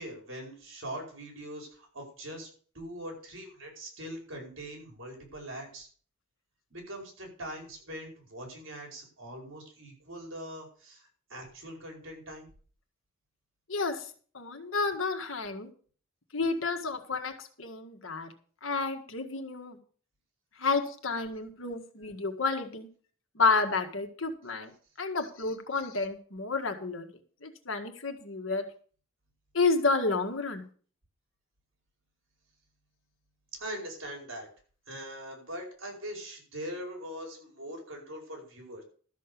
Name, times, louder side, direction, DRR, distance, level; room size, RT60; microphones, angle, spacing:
voice 1, 0.0-2.5 2.7-5.9 6.7-12.5 33.5-34.5 34.9-38.8, right 1 dB, 65° right, 1 dB, 4.9 m, -42 dB
voice 2, 13.7-14.1 14.3-15.7 16.3-18.3 18.6-19.8 20.6-22.9 23.4-24.7 25.0-27.1 27.4-28.7 29.5-30.7, left 4 dB, 70° left, 6 dB, 1.8 m, -30 dB
13.0 x 6.6 x 6.8 m, 0.43 s
head